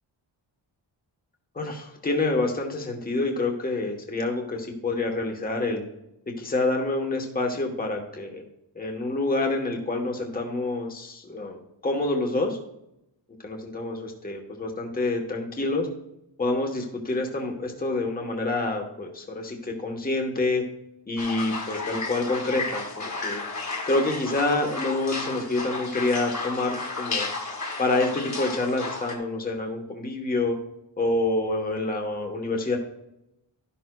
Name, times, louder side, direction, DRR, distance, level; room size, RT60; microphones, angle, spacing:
voice 1, 1.5-5.8 6.3-8.4 8.7-11.6 11.8-12.6 13.4-15.9 16.4-20.6 21.1-23.4 23.9-27.3 27.8-30.6 31.0-32.8, left 2 dB, 20° left, 2 dB, 1.1 m, -27 dB
sound 1, 21.2-29.1, left 3 dB, 40° left, 2.0 m, -33 dB
12.5 x 11.0 x 2.3 m, 0.83 s
wide cardioid pair, 160°, 46 cm